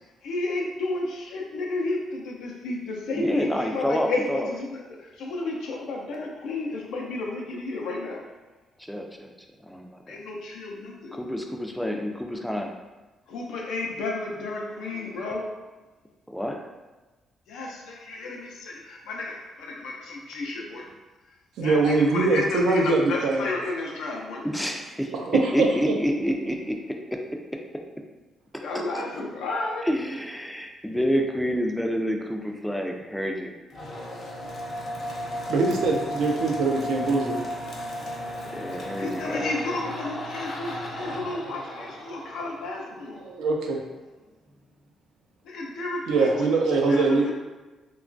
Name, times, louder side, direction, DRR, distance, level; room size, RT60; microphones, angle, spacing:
voice 1, 0.2-8.2 10.1-11.2 13.3-15.5 17.5-20.9 21.6-24.5 28.6-29.9 33.8-33.9 39.0-43.2 45.4-47.3, left 2 dB, 80° left, -1 dB, 0.4 m, -32 dB
voice 2, 3.1-4.5 8.9-9.3 9.7-10.2 11.1-12.7 16.3-16.6 24.4-25.1 25.5-27.2 28.5-28.6 28.9-29.0 29.9-33.5 38.5-39.4, equal, ahead, 2 dB, 0.3 m, -28 dB
voice 3, 21.6-23.5 25.1-25.9 35.5-37.4 43.2-43.8 46.1-47.3, right 3 dB, 80° right, 0 dB, 0.4 m, -23 dB
sound 1, 33.7-43.3, equal, 50° left, 0.7 m, -34 dB
2.9 x 2.3 x 2.5 m, 1.2 s
cardioid pair, 90°, 0 cm